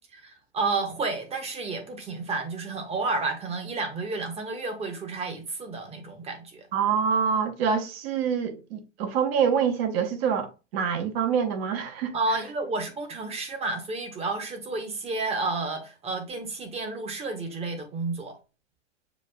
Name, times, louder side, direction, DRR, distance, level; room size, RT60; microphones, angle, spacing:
voice 1, 0.1-6.7 12.1-18.3, right 3 dB, 15° right, 0.8 m, -31 dB
voice 2, 6.7-12.1, right 7 dB, 50° right, 0.9 m, -26 dB
6.9 x 2.4 x 2.2 m
hypercardioid pair, 110°, 38 cm